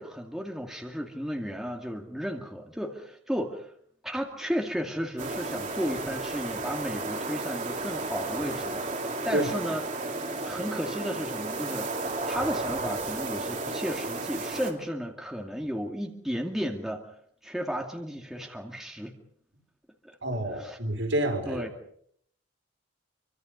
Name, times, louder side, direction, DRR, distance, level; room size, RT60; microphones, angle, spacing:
voice 1, 0.0-3.7 4.0-8.9 9.2-9.8 10.4-17.1 17.4-19.2 20.0-20.2 20.6-20.8 21.5-21.7, equal, ahead, 1 dB, 2.3 m, -34 dB
sound 1, 5.2-14.7, right 3 dB, 35° right, 3.2 m, -33 dB
voice 2, 20.2-21.6, right 1 dB, 65° right, 2 dB, 5.3 m, -28 dB
27.0 x 24.5 x 5.4 m, 0.67 s
head